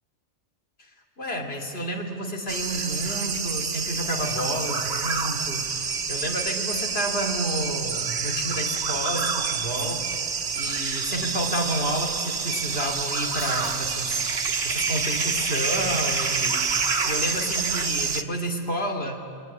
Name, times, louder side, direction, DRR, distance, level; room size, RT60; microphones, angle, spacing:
voice 1, 0.8-14.2 14.6-16.7 17.1-19.2, equal, 60° left, 1 dB, 3.2 m, -30 dB
sound 1, 2.5-18.2, right 5 dB, 70° right, 1.5 m, -27 dB
sound 2, 13.4-14.0, left 5 dB, 45° left, 1.2 m, -43 dB
28.0 x 21.5 x 9.9 m, 2.2 s
omnidirectional pair, 1.2 m